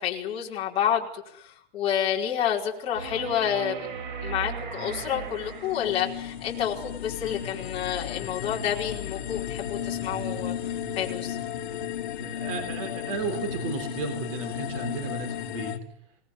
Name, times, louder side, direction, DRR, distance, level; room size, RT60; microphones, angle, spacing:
voice 1, 0.0-3.9 4.2-11.4, left 9 dB, 20° left, -2 dB, 5.0 m, -29 dB
sound 1, 2.9-6.3 8.9-9.0, right 6 dB, 50° right, 5.6 m, -37 dB
sound 2, 5.1-15.8, left 9 dB, 50° left, 2.8 m, -34 dB
voice 2, 12.2-15.8, right 4 dB, 30° right, 7 dB, 3.7 m, -34 dB
27.5 x 19.5 x 9.7 m, 0.72 s
supercardioid pair, 180°, 31 cm